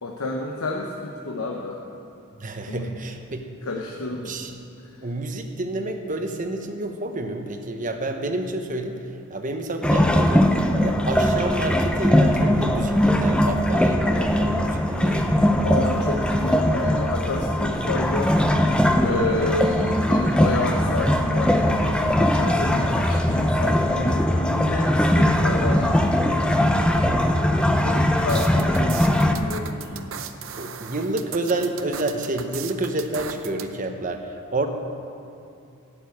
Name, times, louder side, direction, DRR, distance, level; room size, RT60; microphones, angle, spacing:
voice 1, 0.0-1.8 2.7-2.9 3.6-4.4 4.8-5.0 15.6-18.4 19.0-27.1 27.5-30.1, left 2 dB, 85° left, -1 dB, 1.0 m, -30 dB
voice 2, 2.4-3.5 4.2-4.6 5.0-9.0 9.3-15.5 27.8-28.0 28.9-29.2 30.6-34.7, right 2 dB, 40° right, 5 dB, 1.0 m, -29 dB
sound 1, 9.8-29.3, left 1 dB, 5° left, 0.6 m, -20 dB
sound 2, 28.3-33.7, right 8 dB, 65° right, 0.7 m, -36 dB
12.0 x 7.1 x 8.5 m, 2.7 s
head